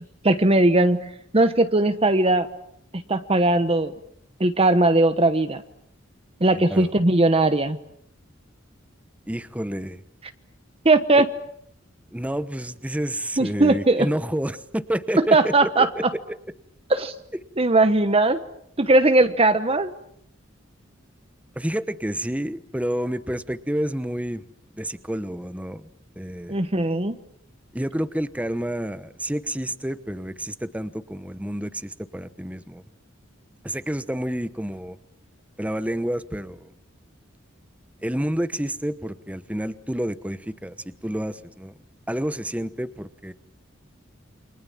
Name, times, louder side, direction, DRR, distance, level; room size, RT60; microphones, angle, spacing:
voice 1, 0.2-1.0 1.3-2.5 2.9-3.9 4.4-5.6 6.4-7.8 10.8-11.3 13.4-14.1 15.3-15.9 16.9-17.1 17.6-18.4 18.8-19.9 26.5-27.2, right 2 dB, 30° right, 10 dB, 1.1 m, -19 dB
voice 2, 6.5-6.9 9.3-10.0 11.1-11.2 12.1-16.4 21.6-24.4 24.7-25.9 26.2-26.6 27.7-32.8 33.6-35.0 35.6-36.7 38.0-40.8 41.0-41.7 42.1-43.3, right 1 dB, 5° right, 13 dB, 1.1 m, -29 dB
29.5 x 26.0 x 7.3 m, 0.70 s
head